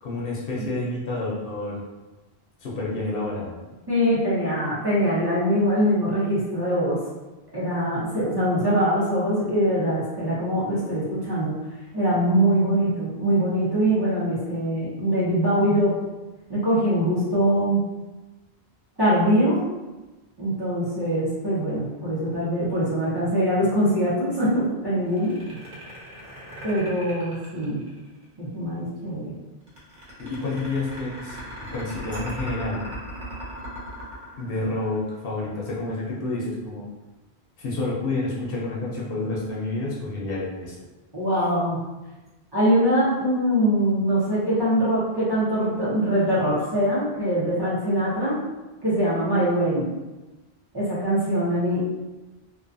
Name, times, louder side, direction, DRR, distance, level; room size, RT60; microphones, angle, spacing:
voice 1, 0.0-1.8 2.6-3.5 30.2-31.4 31.7-32.8 34.4-36.9 37.6-40.7, left 2 dB, 65° left, -4 dB, 0.7 m, -29 dB
voice 2, 3.9-7.0 7.5-11.5 11.9-15.9 16.5-17.8 19.0-19.6 20.4-25.6 26.6-27.8 28.4-29.3 41.1-41.8 42.5-48.4 48.8-49.9 50.7-51.9, equal, 25° right, -10 dB, 0.6 m, -23 dB
sound 1, 25.1-28.2 29.7-35.2, equal, 50° right, 1.0 m, -38 dB
2.4 x 2.3 x 2.5 m, 1.1 s
omnidirectional pair, 1.1 m